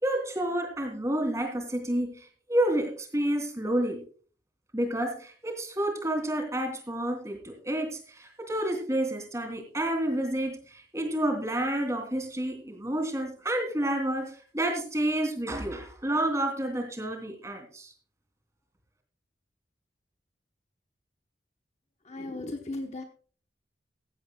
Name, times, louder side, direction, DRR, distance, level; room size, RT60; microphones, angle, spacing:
voice 1, 0.0-4.0 4.7-17.9, right 1 dB, 15° right, 4 dB, 3.0 m, -29 dB
voice 2, 22.0-23.0, left 2 dB, 40° left, 4 dB, 1.1 m, -36 dB
16.0 x 14.5 x 2.3 m, 0.41 s
head